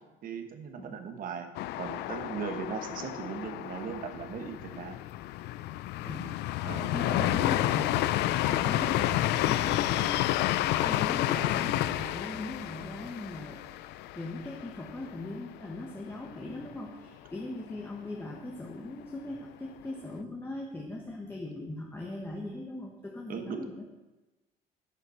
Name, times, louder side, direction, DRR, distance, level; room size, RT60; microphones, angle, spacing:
voice 1, 0.2-1.5 1.8-5.0 6.6-7.3 23.3-23.6, right 6 dB, 55° right, 7 dB, 1.2 m, -38 dB
sound 1, 1.5-15.3 15.6-15.7 16.1-16.6, left 14 dB, 80° left, 0.4 m, -30 dB
voice 2, 6.9-8.0 8.5-10.2 10.8-13.6 14.2-23.9, left 1 dB, 15° left, -1 dB, 1.2 m, -39 dB
12.0 x 6.9 x 4.3 m, 1.1 s
cardioid pair, 110°, 17 cm